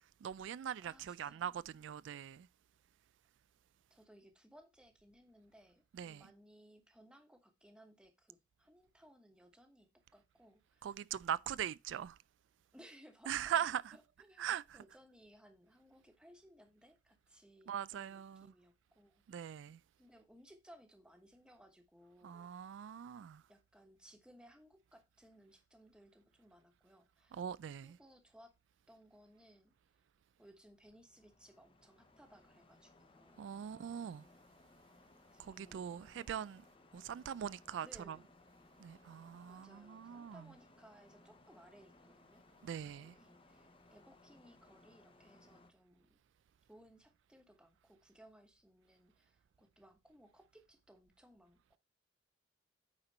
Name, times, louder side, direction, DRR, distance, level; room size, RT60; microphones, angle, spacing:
voice 1, 0.2-2.5 5.9-6.2 10.8-12.2 13.3-14.0 14.4-14.6 17.7-18.5 19.3-19.8 22.2-23.4 27.3-28.0 33.4-34.2 35.4-36.6 36.9-38.2 38.8-40.4 42.6-43.1, right 9 dB, 80° right, 0.3 m, -41 dB
voice 2, 0.8-1.6 3.9-10.9 12.7-14.5 14.7-19.4 20.0-22.5 23.5-27.4 27.8-28.5 28.9-29.7 30.4-33.5 35.3-36.1 37.8-38.3 39.5-46.2 46.7-51.8, equal, 5° right, 1.2 m, -63 dB
sound 1, 30.6-45.7, left 2 dB, 30° left, 0.9 m, -64 dB
8.9 x 4.4 x 4.2 m
head